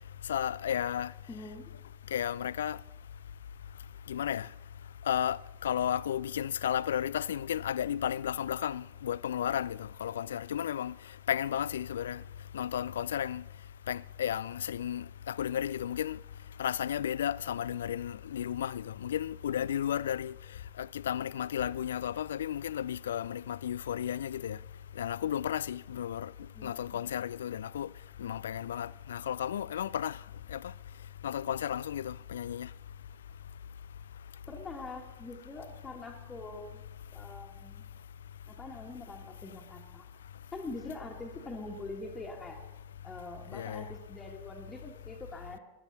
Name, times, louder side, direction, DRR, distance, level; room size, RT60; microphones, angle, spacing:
voice 1, 0.3-1.1 2.1-2.8 4.1-4.5 5.1-11.0 11.3-12.2 12.5-13.4 13.9-16.2 16.6-20.3 20.8-24.6 25.0-26.3 26.6-27.9 28.2-30.2 30.5-30.7 31.2-32.7 43.5-43.9, left 10 dB, 65° left, 0.3 m, -33 dB
voice 2, 1.3-1.7 26.5-27.1 34.5-36.8 37.1-37.8 38.5-40.1 40.5-42.6 43.0-45.6, left 2 dB, 15° left, 1.7 m, -44 dB
20.0 x 11.5 x 4.1 m
figure-of-eight pair, 90°, 0 cm